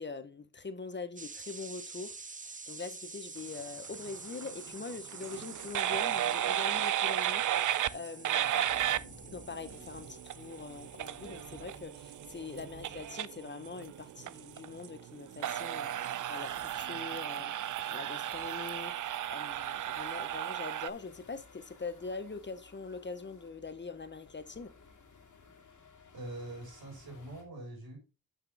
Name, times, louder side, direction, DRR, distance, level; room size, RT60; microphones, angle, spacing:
voice 1, 0.0-8.7 9.3-24.7, left 4 dB, 30° left, 0.8 m, -43 dB
sound 1, 1.2-14.8, right 4 dB, 20° right, 0.7 m, -49 dB
sound 2, 3.9-20.9, right 11 dB, 55° right, 0.4 m, -34 dB
sound 3, 8.7-27.4, left 4 dB, 55° left, 2.2 m, -59 dB
voice 2, 26.1-28.0, right 1 dB, 75° right, 3.9 m, -44 dB
8.3 x 5.7 x 3.3 m
cardioid pair, 90°, 36 cm